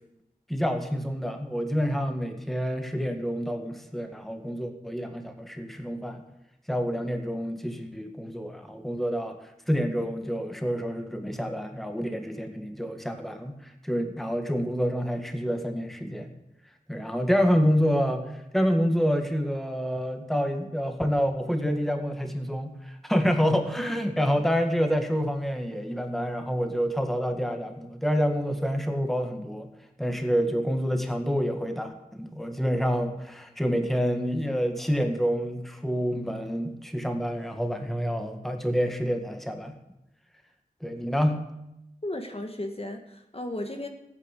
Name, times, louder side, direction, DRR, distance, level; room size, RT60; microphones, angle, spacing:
voice 1, 0.5-6.2 6.7-16.3 16.9-29.7 30.0-39.8 40.8-41.4, equal, ahead, 5 dB, 1.9 m, -28 dB
voice 2, 42.0-43.9, left 1 dB, 40° left, 4 dB, 1.9 m, -34 dB
15.0 x 9.7 x 8.4 m, 0.86 s
wide cardioid pair, 50°, 15 cm